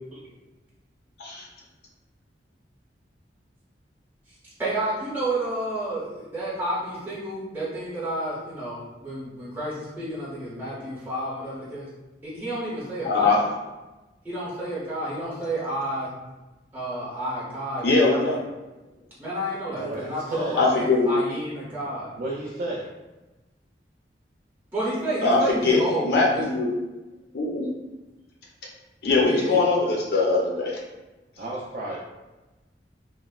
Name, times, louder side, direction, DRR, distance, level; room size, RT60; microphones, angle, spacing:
voice 1, 4.6-11.9 12.2-13.5 14.2-16.1 16.7-18.4 19.2-22.1 24.7-26.4 29.2-29.6, right 1 dB, 10° right, -8 dB, 0.6 m, -30 dB
voice 2, 13.0-13.4 17.8-18.4 20.6-21.1 25.2-26.7 27.3-27.7 29.0-30.8, left 3 dB, 60° left, -2 dB, 0.4 m, -21 dB
voice 3, 19.8-20.6 22.2-22.9 31.4-32.0, right 2 dB, 50° right, -5 dB, 0.3 m, -32 dB
2.9 x 2.0 x 2.3 m, 1.1 s
head